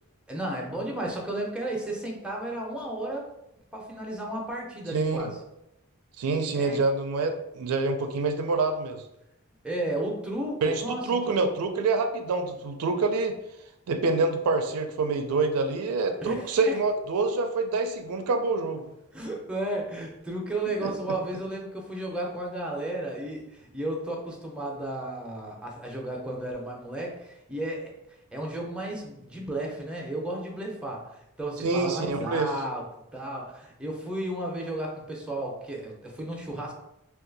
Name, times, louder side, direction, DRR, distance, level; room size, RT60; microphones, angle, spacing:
voice 1, 0.3-3.3 3.7-5.4 6.5-6.8 9.6-11.4 16.2-16.8 19.1-27.9 28.3-32.8 33.1-36.7, right 1 dB, 5° right, -2 dB, 0.5 m, -33 dB
voice 2, 4.9-5.3 6.2-9.0 10.6-13.4 13.9-18.8 20.8-20.9 31.6-32.5, right 3 dB, 90° right, 6 dB, 0.4 m, -26 dB
2.7 x 2.3 x 3.9 m, 0.85 s
head